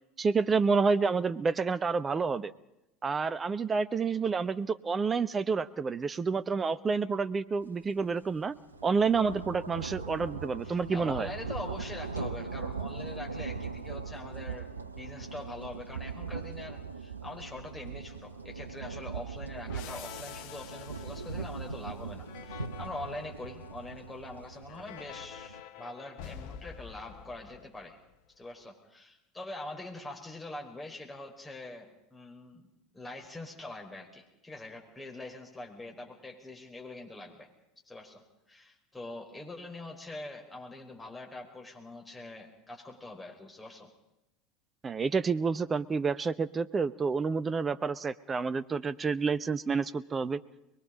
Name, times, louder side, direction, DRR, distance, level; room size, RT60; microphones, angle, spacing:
voice 1, 0.2-2.5 3.0-8.6 8.8-11.3 44.8-50.4, right 5 dB, 25° right, 15 dB, 0.9 m, -29 dB
sound 1, 7.8-8.0 8.3-25.6, right 4 dB, 85° right, 0.9 m, -40 dB
voice 2, 10.6-28.0 28.4-32.7 32.9-37.5 37.8-38.2 38.5-43.9, left 2 dB, 10° left, 1 dB, 5.2 m, -44 dB
sound 2, 19.7-28.2, left 9 dB, 55° left, 1.5 m, -48 dB
23.0 x 22.5 x 5.2 m, 0.88 s
figure-of-eight pair, 75°, 0 cm